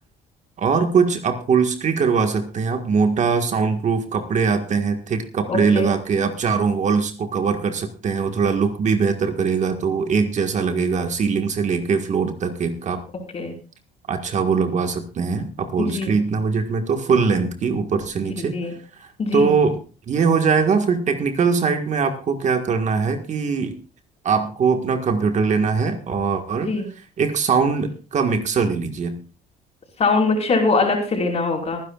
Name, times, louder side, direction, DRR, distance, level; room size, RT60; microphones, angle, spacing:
voice 1, 0.6-13.0 14.1-18.6 19.0-19.8 20.1-23.8 24.2-26.7 27.2-29.1, right 5 dB, 45° right, 6 dB, 1.7 m, -21 dB
voice 2, 5.5-5.9 13.3-13.6 15.8-16.1 18.5-18.7 19.2-19.5 26.6-26.9 30.0-31.8, left 3 dB, 40° left, 0 dB, 5.0 m, -22 dB
23.5 x 10.5 x 2.4 m, 0.35 s
cardioid pair, 110°, 17 cm